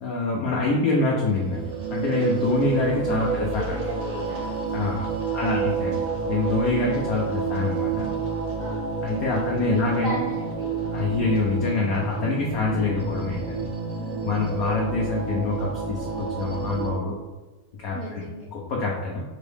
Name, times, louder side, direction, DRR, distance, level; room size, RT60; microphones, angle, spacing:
voice 1, 0.0-3.6 4.7-5.1 5.3-8.1 9.0-10.2 10.9-13.7 14.2-17.2 17.8-18.2 18.5-19.2, left 3 dB, 90° left, -2 dB, 0.7 m, -25 dB
sound 1, 1.2-16.9, right 5 dB, 25° right, 0.9 m, -29 dB
voice 2, 3.1-4.5 5.3-5.7 8.4-8.8 9.3-10.7 12.5-12.6 13.9-14.6 17.9-18.5, right 1 dB, 85° right, -4 dB, 0.7 m, -37 dB
4.5 x 3.0 x 3.3 m, 1.2 s
omnidirectional pair, 2.3 m